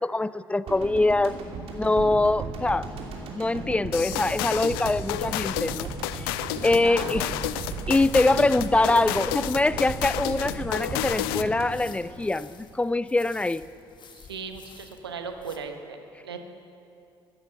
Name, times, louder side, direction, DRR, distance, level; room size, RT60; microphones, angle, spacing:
voice 1, 0.0-1.4 1.7-2.9 3.3-5.9 6.2-6.3 6.6-7.3 7.9-13.6, left 2 dB, 10° left, 18 dB, 0.4 m, -24 dB
sound 1, 0.7-12.9 13.1-13.3, right 3 dB, 50° right, 3.0 m, -36 dB
voice 2, 1.6-2.1 6.7-7.3 14.1-16.4, right 5 dB, 80° right, 6 dB, 1.2 m, -38 dB
sound 2, 3.9-11.6, left 15 dB, 65° left, 0.5 m, -31 dB
sound 3, 10.4-15.6, left 6 dB, 35° left, 1.5 m, -52 dB
16.0 x 12.5 x 7.1 m, 2.6 s
figure-of-eight pair, 50°, 13 cm